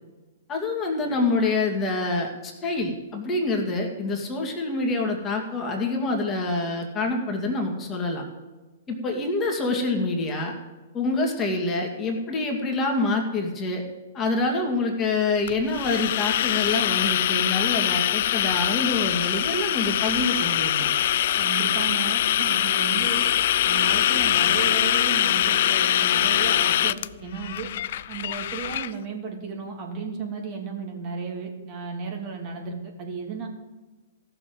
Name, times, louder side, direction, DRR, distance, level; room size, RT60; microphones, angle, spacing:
voice 1, 0.5-8.3 8.9-10.5 10.9-13.8 14.1-20.9, left 3 dB, 20° left, 1 dB, 2.3 m, -26 dB
sound 1, 15.5-28.9, left 11 dB, 60° left, 0.4 m, -23 dB
voice 2, 21.3-23.2 23.6-27.7 28.1-33.5, right 5 dB, 40° right, 1 dB, 2.8 m, -34 dB
14.5 x 6.8 x 7.8 m, 1.2 s
hypercardioid pair, 120°, 0 cm